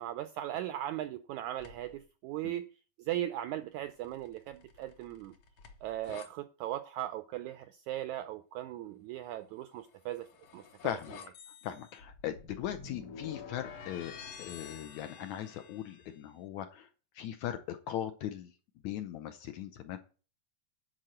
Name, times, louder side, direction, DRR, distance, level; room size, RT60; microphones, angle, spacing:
voice 1, 0.0-2.7 3.0-5.3 5.8-10.3 10.5-10.7, right 13 dB, 80° right, 1.7 m, -38 dB
sound 1, 1.6-2.0 3.9-6.3 9.8-16.2, left 6 dB, 60° left, 2.0 m, -50 dB
voice 2, 10.8-11.1 11.6-14.1 14.4-16.9 17.1-18.5 18.8-20.0, left 11 dB, 75° left, 1.8 m, -39 dB
10.5 x 4.5 x 7.7 m
omnidirectional pair, 3.9 m